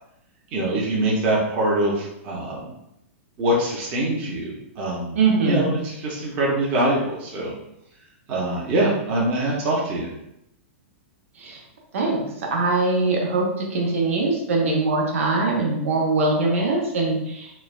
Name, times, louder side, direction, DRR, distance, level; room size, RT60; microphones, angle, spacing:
voice 1, 0.5-2.7 3.4-7.5 8.3-10.1, right 1 dB, 20° right, -4 dB, 0.5 m, -24 dB
voice 2, 5.2-5.7 11.4-11.6 11.9-17.5, right 3 dB, 80° right, -1 dB, 0.8 m, -22 dB
3.1 x 2.1 x 2.3 m, 0.81 s
supercardioid pair, 175°, 7 cm